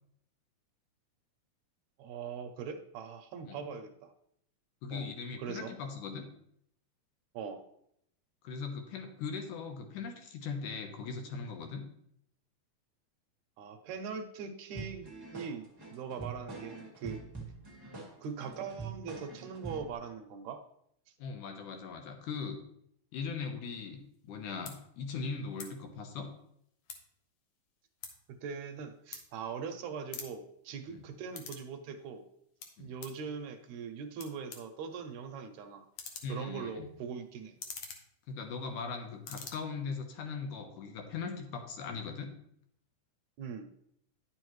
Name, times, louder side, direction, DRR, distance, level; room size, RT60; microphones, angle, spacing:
voice 1, 2.0-4.1 4.9-5.1 5.4-5.7 7.3-7.6 13.6-17.2 18.2-20.6 28.3-32.2 32.8-35.9 36.3-37.6 43.4-43.7, right 6 dB, 75° right, 7 dB, 1.9 m, -41 dB
voice 2, 4.8-6.3 8.4-11.8 21.2-22.6 23.1-26.3 30.9-31.0 32.8-32.9 36.2-36.9 38.3-42.3, left 5 dB, 90° left, 5 dB, 2.6 m, -40 dB
sound 1, 14.7-19.9, right 4 dB, 20° right, 0.6 m, -44 dB
sound 2, 24.1-24.3 24.6-24.8 25.5-25.7 26.0-27.2 27.6-29.7 30.0-31.7 32.0-33.2 33.8-33.9 34.2-38.9 39.1-39.5, left 5 dB, 65° left, 1.8 m, -47 dB
10.0 x 7.1 x 3.1 m, 0.72 s
omnidirectional pair, 3.5 m